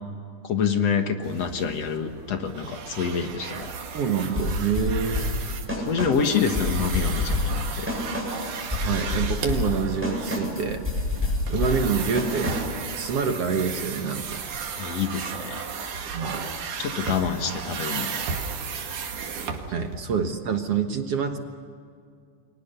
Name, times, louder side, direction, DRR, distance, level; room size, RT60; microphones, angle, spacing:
voice 1, 0.4-3.7 5.9-7.9 11.2-11.4 14.8-15.6 16.8-18.2, left 6 dB, 60° left, 6 dB, 2.4 m, -27 dB
sound 1, 1.2-20.0, right 6 dB, 75° right, 3.5 m, -35 dB
voice 2, 3.9-5.3 8.7-10.9 11.5-12.6 13.0-14.4 16.1-16.4 19.7-21.4, right 6 dB, 55° right, 5 dB, 2.2 m, -27 dB
sound 2, 4.4-12.8, left 2 dB, 5° right, 7.6 m, -28 dB
30.0 x 23.0 x 6.8 m, 2.3 s
omnidirectional pair, 3.6 m